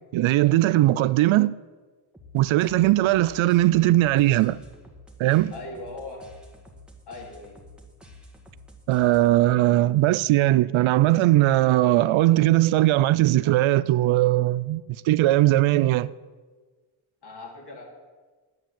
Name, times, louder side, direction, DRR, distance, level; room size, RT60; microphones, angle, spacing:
voice 1, 0.1-1.5 2.3-4.6 5.2-5.5 8.9-16.1, right 15 dB, 70° right, 0.5 m, -19 dB
sound 1, 2.1-9.6, left 1 dB, ahead, 1.9 m, -49 dB
voice 2, 5.5-6.3 7.1-7.6 17.2-17.8, left 2 dB, 50° left, 4.0 m, -39 dB
9.9 x 9.0 x 7.7 m
cardioid pair, 85°, 49 cm